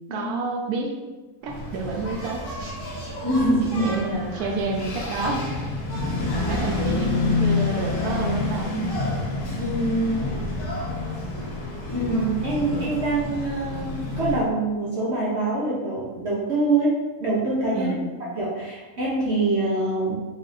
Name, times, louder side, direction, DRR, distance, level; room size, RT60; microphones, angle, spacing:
voice 1, 0.1-1.0 1.4-2.7 3.6-5.5 6.3-8.8 17.7-18.1, right 3 dB, 75° right, 0 dB, 1.1 m, -29 dB
Engine, 1.5-14.5, left 3 dB, 80° left, 1.7 m, -28 dB
voice 2, 3.2-4.0 9.5-10.3 11.9-16.9 17.2-17.9 18.4-20.2, right 2 dB, 50° right, -7 dB, 1.0 m, -24 dB
4.9 x 2.7 x 4.0 m, 1.2 s
omnidirectional pair, 1.6 m